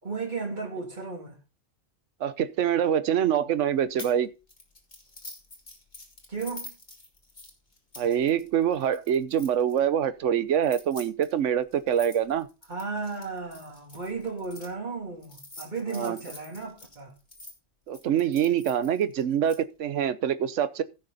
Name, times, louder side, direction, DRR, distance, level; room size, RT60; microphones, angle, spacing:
voice 1, 0.0-1.4 6.3-6.7 12.7-17.1, right 4 dB, 35° right, 3.0 m, -34 dB
voice 2, 2.2-4.3 8.0-12.5 15.9-16.2 17.9-20.8, right 9 dB, 70° right, 1.1 m, -25 dB
sound 1, 4.0-4.2 4.5-9.8 10.5-14.7 15.2-17.5 17.9-19.6, left 2 dB, 35° left, 2.7 m, -46 dB
15.5 x 6.6 x 4.0 m
omnidirectional pair, 1.3 m